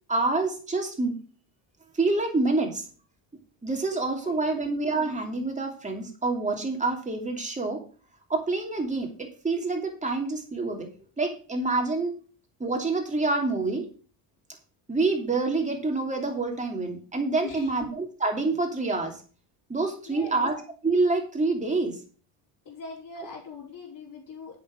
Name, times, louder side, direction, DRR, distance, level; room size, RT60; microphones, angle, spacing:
voice 1, 0.1-1.2 1.9-2.9 3.6-7.8 8.3-10.9 11.2-12.2 12.6-13.9 14.9-19.2 19.7-22.0, right 3 dB, 15° right, 2 dB, 2.9 m, -27 dB
voice 2, 3.9-4.8 17.4-17.7 20.1-20.5 22.6-24.6, left 4 dB, 40° left, -5 dB, 4.8 m, -42 dB
8.4 x 6.8 x 6.3 m, 0.39 s
cardioid pair, 110°, 49 cm